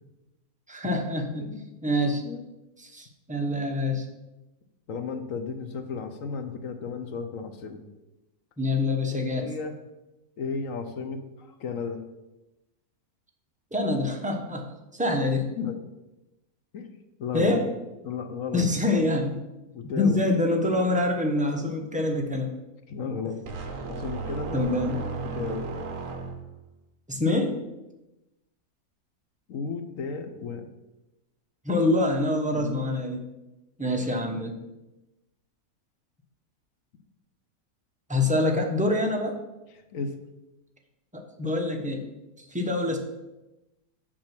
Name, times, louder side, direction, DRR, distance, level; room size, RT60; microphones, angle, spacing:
voice 1, 0.7-1.5 1.8-2.2 2.8-4.1 8.6-9.5 13.7-14.7 14.9-15.5 17.3-17.7 18.5-19.4 19.9-22.5 24.5-25.0 27.1-27.6 31.6-33.2 33.8-34.6 38.1-39.4 41.1-42.0 42.5-43.0, left 2 dB, 5° right, 2 dB, 0.8 m, -25 dB
voice 2, 4.9-7.8 9.1-9.7 10.4-12.0 15.6-15.8 16.7-16.9 17.2-17.7 18.0-18.6 19.7-20.2 22.9-23.4 23.9-24.7 25.2-25.7 29.5-30.7 32.5-32.8 39.9-40.2, left 5 dB, 60° left, 7 dB, 1.2 m, -34 dB
sound 1, 23.5-26.6, right 4 dB, 60° right, 1.2 m, -34 dB
6.3 x 6.0 x 6.0 m, 0.99 s
omnidirectional pair, 1.6 m